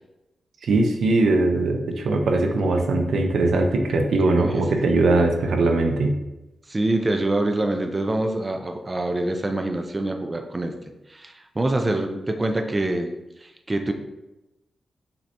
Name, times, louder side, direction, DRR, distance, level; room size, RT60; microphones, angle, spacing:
voice 1, 0.6-6.2, right 2 dB, 80° right, 4 dB, 0.6 m, -20 dB
voice 2, 6.7-10.7 11.1-13.1 13.4-13.9, right 2 dB, 25° right, 5 dB, 0.4 m, -25 dB
5.5 x 2.7 x 3.3 m, 0.98 s
cardioid pair, 85°, 0 cm